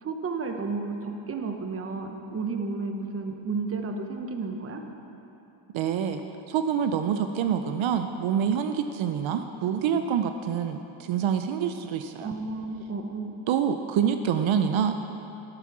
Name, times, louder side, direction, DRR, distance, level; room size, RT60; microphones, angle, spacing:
voice 1, 0.0-4.8 12.2-13.4, right 4 dB, 30° right, 4 dB, 0.9 m, -32 dB
voice 2, 5.7-6.2 6.5-12.3 13.5-15.0, right 8 dB, 70° right, 8 dB, 0.7 m, -26 dB
12.0 x 8.2 x 6.1 m, 3.0 s
cardioid pair, 140°, 49 cm